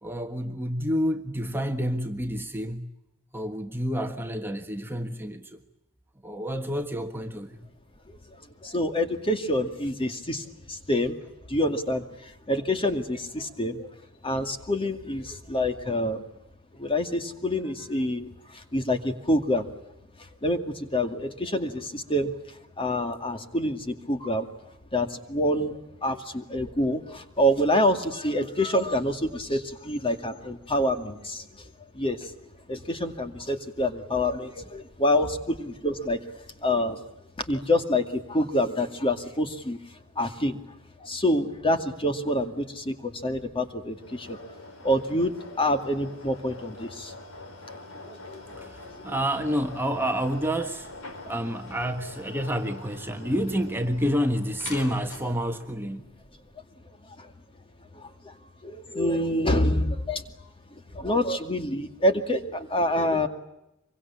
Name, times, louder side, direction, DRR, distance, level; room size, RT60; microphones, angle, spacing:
voice 1, 0.0-2.9 3.3-5.6 6.2-7.6 48.5-50.9 51.3-56.0, equal, 10° right, 1.4 m, -29 dB
voice 2, 8.6-11.2 11.5-13.9 14.2-16.2 16.8-19.7 20.4-22.3 22.8-24.5 24.9-31.5 31.9-32.3 32.7-36.2 36.6-37.0 37.5-39.8 40.2-40.6 41.0-44.4 44.8-47.1 48.1-48.4 49.1-49.2 57.2-57.3 57.9-58.3 58.6-60.2 60.9-63.3, left 1 dB, 25° left, 2.3 m, -27 dB
sound 1, 43.9-55.6, left 2 dB, 70° left, 4.5 m, -44 dB
25.5 x 23.5 x 8.6 m
head